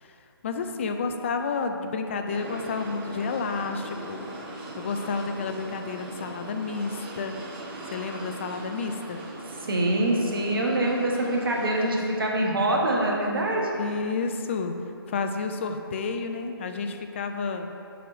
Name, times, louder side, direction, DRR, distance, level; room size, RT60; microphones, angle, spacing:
voice 1, 0.4-4.3 4.8-7.4 7.9-9.2 12.1-12.2 13.8-14.7 15.1-17.7, left 4 dB, 30° left, 6 dB, 0.4 m, -30 dB
sound 1, 2.3-11.9, right 2 dB, 25° right, 0.8 m, -40 dB
voice 2, 9.7-13.7, right 1 dB, 65° right, -1 dB, 1.2 m, -24 dB
6.9 x 3.0 x 6.0 m, 2.7 s
figure-of-eight pair, 145°, 13 cm